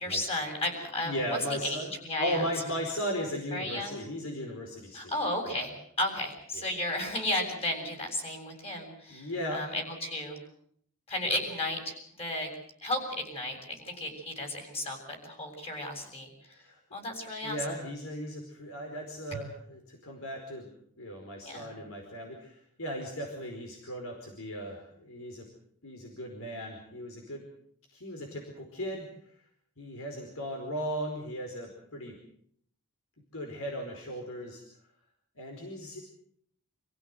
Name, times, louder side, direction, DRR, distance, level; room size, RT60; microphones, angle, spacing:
voice 1, 0.0-1.2 1.6-2.5 3.5-4.0 4.9-5.7 6.0-10.4 11.1-12.5 12.8-16.3 16.9-17.6 19.3-19.4 21.4-21.8, left 1 dB, 25° left, 4 dB, 7.6 m, -34 dB
voice 2, 1.0-1.9 2.2-5.1 5.4-5.6 6.5-6.7 9.1-9.7 11.2-11.4 16.5-16.8 17.4-20.7 21.0-25.5 25.8-27.4 27.9-29.3 29.8-32.1 33.3-34.6 35.4-36.0, equal, 65° left, 2 dB, 4.8 m, -37 dB
27.5 x 16.0 x 8.1 m, 0.65 s
head